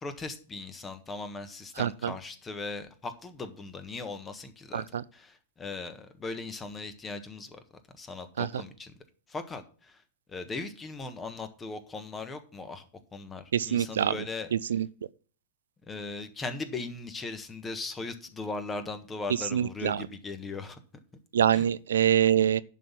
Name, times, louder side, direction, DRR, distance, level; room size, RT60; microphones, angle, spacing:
voice 1, 0.0-4.8 5.1-7.6 8.0-8.9 9.3-10.0 10.3-12.8 13.1-14.5 15.9-20.8 21.5-21.7, left 3 dB, 20° left, 1.4 m, -38 dB
voice 2, 1.8-2.1 4.7-5.0 8.4-8.5 13.5-14.1 14.5-14.9 19.5-20.1 21.3-22.6, right 9 dB, 75° right, 0.4 m, -25 dB
11.0 x 4.1 x 7.2 m
hypercardioid pair, 100°, 0 cm